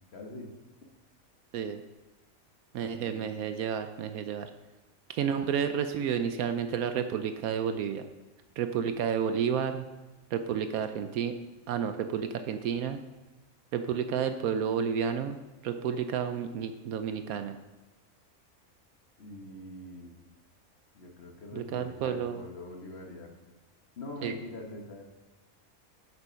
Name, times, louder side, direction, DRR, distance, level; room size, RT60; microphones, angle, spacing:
voice 1, 0.1-0.5 2.8-3.3 19.2-20.1 20.9-23.4 24.0-25.0, left 1 dB, 50° left, 2 dB, 1.5 m, -44 dB
voice 2, 2.7-4.5 5.1-8.0 8.6-9.8 10.3-11.3 11.7-13.0 13.7-15.4 15.6-17.6 21.5-22.4 24.2-24.3, right 7 dB, 80° right, 8 dB, 1.0 m, -31 dB
9.0 x 6.8 x 5.7 m, 1.1 s
omnidirectional pair, 1.5 m